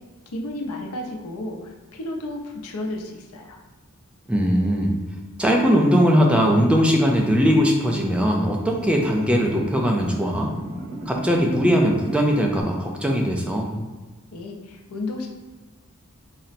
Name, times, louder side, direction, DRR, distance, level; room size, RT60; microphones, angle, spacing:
voice 1, 0.3-3.6 14.3-15.3, left 1 dB, 80° left, 1 dB, 0.6 m, -32 dB
voice 2, 4.3-5.0 5.4-10.5 11.1-13.7, equal, 5° right, 0 dB, 0.4 m, -20 dB
sound 1, 7.8-12.6, right 1 dB, 70° right, 1.4 m, -36 dB
3.9 x 2.1 x 4.1 m, 1.3 s
head